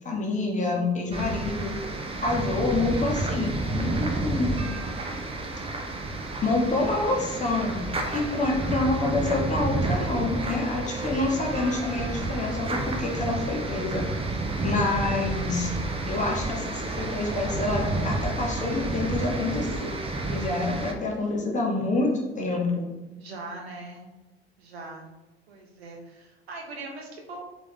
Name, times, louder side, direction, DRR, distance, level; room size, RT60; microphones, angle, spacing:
voice 1, 0.0-1.7 2.2-4.8 6.4-7.8 8.1-14.0 14.6-15.7 16.1-19.9 20.3-22.9, left 2 dB, 25° left, -1 dB, 1.1 m, -27 dB
sound 1, 1.1-20.9, right 2 dB, 20° right, 0.6 m, -30 dB
voice 2, 8.2-8.7 23.2-24.1 24.6-25.1 25.5-27.4, right 3 dB, 75° right, 0 dB, 0.9 m, -41 dB
3.6 x 3.5 x 3.4 m, 1.0 s
figure-of-eight pair, 60°, 31 cm